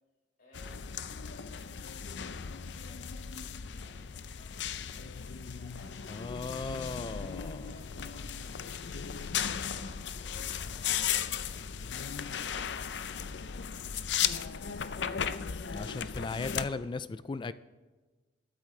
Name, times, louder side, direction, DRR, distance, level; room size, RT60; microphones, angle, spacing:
voice 1, 0.4-5.3 5.5-6.1 6.6-9.3 9.6-11.0, left 2 dB, 55° left, -3 dB, 4.7 m, -61 dB
sound 1, 0.5-16.7, left 8 dB, 75° left, 0.5 m, -36 dB
voice 2, 6.1-7.6 15.7-17.5, left 3 dB, 25° left, 14 dB, 0.3 m, -37 dB
21.0 x 8.4 x 3.2 m, 1.3 s
head